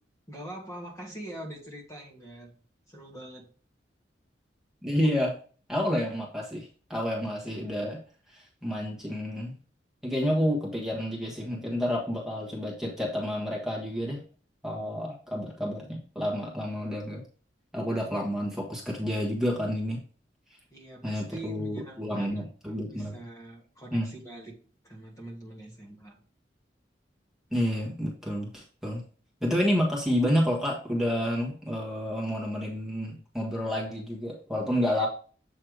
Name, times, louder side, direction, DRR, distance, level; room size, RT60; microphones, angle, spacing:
voice 1, 0.3-2.6 2.9-3.5 20.7-22.5 22.9-24.6 24.8-26.2 34.9-35.1, right 1 dB, 20° left, -1 dB, 1.5 m, -43 dB
voice 2, 4.8-5.4 5.7-8.0 8.3-9.5 10.0-14.2 14.6-17.2 17.7-20.0 21.0-23.2 23.9-24.1 27.5-29.0 29.4-35.1, equal, 5° right, -2 dB, 1.4 m, -29 dB
7.8 x 3.3 x 4.8 m, 0.40 s
head